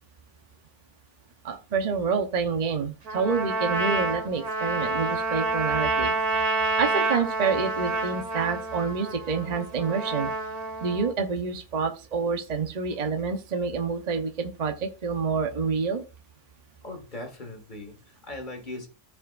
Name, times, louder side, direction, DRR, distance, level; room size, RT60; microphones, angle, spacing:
voice 1, 1.4-6.1 6.8-10.3 10.8-16.0, right 5 dB, 35° right, 0.8 m, -28 dB
Trumpet, 3.1-11.1, right 3 dB, 80° right, 2.2 m, -28 dB
voice 2, 16.8-18.9, left 2 dB, 30° left, 1.9 m, -39 dB
14.5 x 4.9 x 2.5 m
omnidirectional pair, 1.6 m